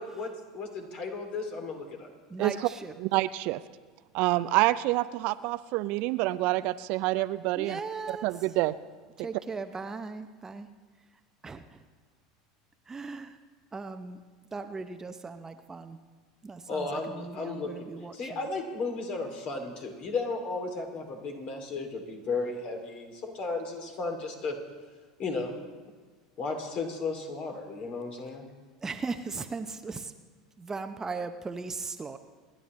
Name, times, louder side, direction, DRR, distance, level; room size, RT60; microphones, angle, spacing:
voice 1, 0.0-2.1 16.7-17.7 18.1-24.6 25.2-25.5 26.4-28.4, left 3 dB, 45° left, 4 dB, 2.7 m, -34 dB
voice 2, 2.3-2.9 7.6-8.3 9.2-10.7 11.4-11.8 12.9-13.4 13.7-14.2 14.5-16.0 16.4-18.4 28.8-30.1 30.6-32.2, right 4 dB, 20° right, 8 dB, 0.7 m, -38 dB
voice 3, 3.0-3.6 4.1-7.8 8.2-8.7, right 18 dB, 55° right, 15 dB, 0.4 m, -27 dB
27.0 x 11.0 x 3.2 m, 1.4 s
hypercardioid pair, 80°, 3 cm